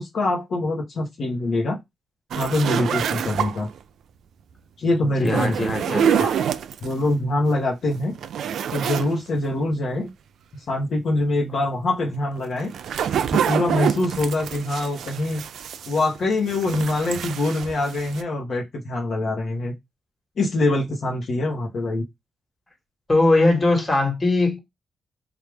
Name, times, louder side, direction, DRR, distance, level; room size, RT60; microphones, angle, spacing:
voice 1, 0.0-1.8 2.4-3.7 4.8-5.5 5.9-6.4 6.8-8.1 8.7-10.1 10.7-12.7 13.3-15.4 15.9-19.7 20.4-22.0, left 2 dB, 65° left, 0.9 m, -24 dB
sound 1, 2.3-3.8 5.2-6.9 7.5-7.6 8.0-9.1 9.4-9.5 12.4-16.2 16.5-18.2, right 8 dB, 85° right, 0.3 m, -26 dB
voice 2, 5.2-6.2 23.1-24.6, left 2 dB, 25° left, 1.5 m, -20 dB
3.3 x 2.4 x 3.3 m
cardioid pair, 95°, 0 cm